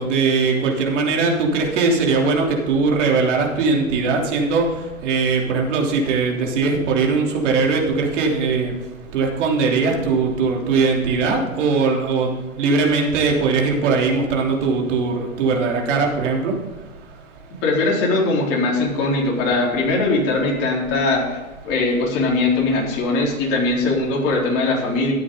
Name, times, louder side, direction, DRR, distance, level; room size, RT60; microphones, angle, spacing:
voice 1, 0.0-4.7 5.0-8.7 9.1-12.3 12.6-16.5, right 4 dB, 55° right, 0 dB, 3.3 m, -20 dB
voice 2, 17.6-21.4 21.7-25.1, left 3 dB, 30° left, -2 dB, 3.8 m, -20 dB
13.5 x 9.7 x 3.9 m, 1.2 s
hypercardioid pair, 130°, 42 cm